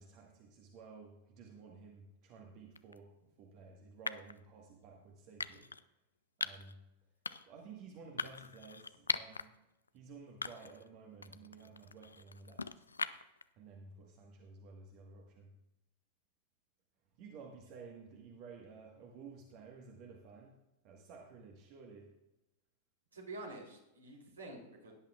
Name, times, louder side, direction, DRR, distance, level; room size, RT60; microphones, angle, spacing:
voice 1, 0.0-5.7 6.4-6.8 7.5-9.5 9.9-12.7 13.6-15.6 17.1-22.2, right 4 dB, 40° right, 1 dB, 1.5 m, -54 dB
sound 1, 2.8-3.0 4.1-4.4 5.4-5.8 6.4-6.7 7.2-7.6 8.2-9.5 9.9-10.0 10.4-10.9 11.2-13.4, left 4 dB, 75° left, 0.4 m, -40 dB
voice 2, 23.1-24.9, right 2 dB, 75° right, -1 dB, 3.1 m, -48 dB
17.0 x 10.5 x 2.4 m, 0.92 s
figure-of-eight pair, 90°, 0 cm